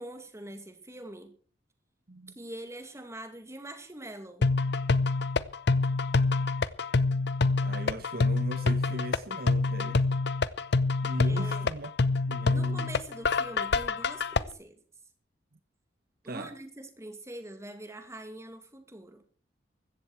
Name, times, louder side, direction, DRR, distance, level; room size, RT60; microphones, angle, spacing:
voice 1, 0.0-1.3 2.4-4.5 11.3-11.7 12.5-14.8 16.2-19.2, right 1 dB, 15° right, 2.2 m, -44 dB
sound 1, 4.4-14.4, left 3 dB, 60° left, 0.8 m, -26 dB
voice 2, 7.6-10.1 11.0-11.9 12.3-12.9 16.2-16.5, right 1 dB, 55° right, 1.1 m, -39 dB
15.5 x 13.5 x 4.7 m
head